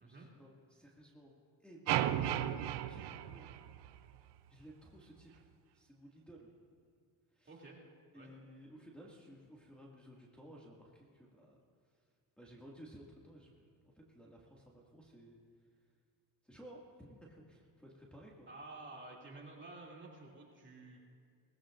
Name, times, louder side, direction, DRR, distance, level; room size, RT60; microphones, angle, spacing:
voice 1, 0.0-3.7 4.5-5.5 5.7-6.5 7.4-7.5 8.1-11.6 12.4-13.7 14.0-15.4 16.4-18.5, equal, 5° left, -5 dB, 2.1 m, -56 dB
sound 1, 1.9-4.2, right 12 dB, 85° right, 0.6 m, -35 dB
voice 2, 7.5-7.9 8.1-8.3 18.5-21.0, right 2 dB, 30° right, -2 dB, 2.7 m, -51 dB
19.5 x 15.0 x 2.6 m, 2.2 s
cardioid pair, 80°, 40 cm